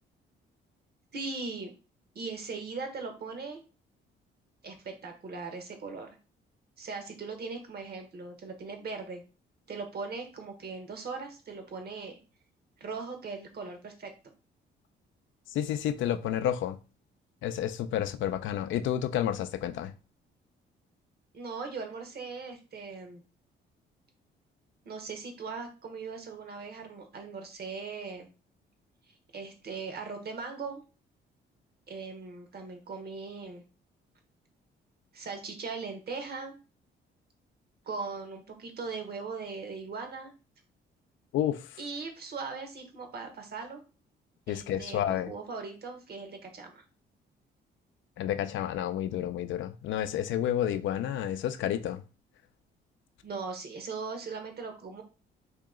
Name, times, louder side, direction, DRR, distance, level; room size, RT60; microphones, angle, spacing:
voice 1, 1.1-1.7 2.1-3.6 4.6-6.2 6.8-9.2 9.7-12.2 12.8-14.1 21.3-23.2 24.8-28.3 29.3-30.8 31.9-33.6 35.1-36.6 37.9-40.3 41.8-43.8 44.5-46.8 53.2-55.0, right 4 dB, 55° right, 1.0 m, -39 dB
voice 2, 15.5-16.8 17.4-19.9 41.3-41.7 44.5-45.3 48.2-52.0, left 10 dB, 75° left, 0.4 m, -30 dB
2.9 x 2.9 x 3.6 m
cardioid pair, 90°, 20 cm